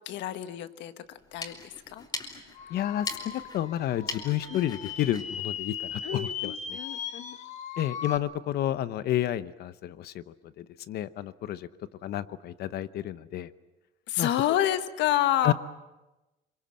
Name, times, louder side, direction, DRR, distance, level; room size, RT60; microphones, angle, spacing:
voice 1, 0.0-1.0 1.3-2.1 4.5-4.6 6.0-7.4 14.1-15.5, left 12 dB, 80° left, 10 dB, 1.5 m, -29 dB
sound 1, 1.1-6.4, left 3 dB, 25° left, 3.3 m, -41 dB
sound 2, 2.5-8.2, left 7 dB, 40° left, 1.5 m, -38 dB
voice 2, 2.7-6.5 7.8-10.2 10.6-11.7 12.0-13.5 14.2-14.3 15.4-15.5, left 12 dB, 60° left, 14 dB, 0.9 m, -30 dB
26.5 x 24.5 x 7.6 m, 1.0 s
cardioid pair, 170°, 18 cm